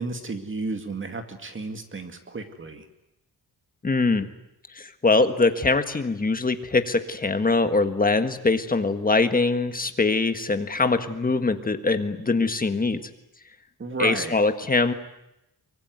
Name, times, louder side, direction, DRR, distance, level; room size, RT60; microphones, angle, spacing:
voice 1, 0.0-2.9 13.8-14.3, right 3 dB, 30° right, 7 dB, 2.3 m, -32 dB
voice 2, 3.8-4.3 4.7-13.1 14.0-14.9, left 3 dB, 20° left, 9 dB, 1.6 m, -23 dB
24.0 x 24.0 x 9.5 m, 0.87 s
wide cardioid pair, 175°, 38 cm